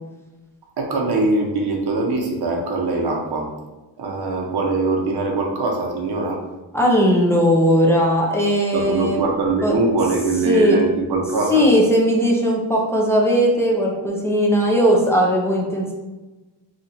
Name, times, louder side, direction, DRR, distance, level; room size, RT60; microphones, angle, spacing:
voice 1, 0.8-3.5 4.0-6.4 8.7-11.6, right 3 dB, 65° right, 0 dB, 0.9 m, -22 dB
voice 2, 6.7-9.2 9.6-9.7 10.5-10.8 11.5-15.9, equal, 5° left, -3 dB, 0.6 m, -18 dB
2.9 x 2.5 x 4.2 m, 1.1 s
wide cardioid pair, 125°, 42 cm